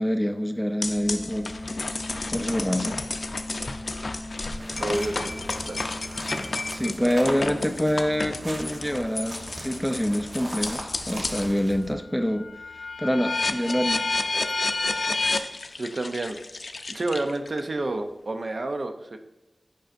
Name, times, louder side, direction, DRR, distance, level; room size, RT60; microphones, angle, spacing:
voice 1, 0.0-1.5 2.3-3.0 6.7-12.5 13.0-14.1, equal, ahead, 6 dB, 0.4 m, -26 dB
sound 1, 0.8-11.5 11.9-17.6, left 3 dB, 65° left, 0.4 m, -31 dB
sound 2, 0.8-11.5, left 1 dB, 80° right, 1.9 m, -42 dB
sound 3, 4.3-11.9, right 1 dB, 40° right, 1.1 m, -39 dB
voice 2, 4.8-5.3 5.7-5.8 7.0-7.1 15.8-16.4 16.9-19.2, right 2 dB, 55° right, 6 dB, 0.5 m, -29 dB
8.9 x 5.4 x 2.5 m, 0.96 s
wide cardioid pair, 80°, 0 cm